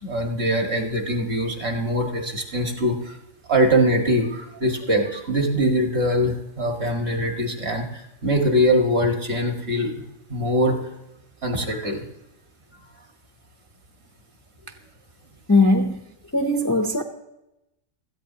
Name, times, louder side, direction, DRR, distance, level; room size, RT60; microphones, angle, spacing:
voice 1, 0.0-3.2 3.5-10.0 10.3-10.9 11.4-12.0, equal, 50° right, 2 dB, 2.0 m, -22 dB
voice 2, 15.5-16.0 16.3-17.0, left 2 dB, 20° left, 3 dB, 0.6 m, -19 dB
17.0 x 14.0 x 2.9 m, 0.91 s
omnidirectional pair, 1.3 m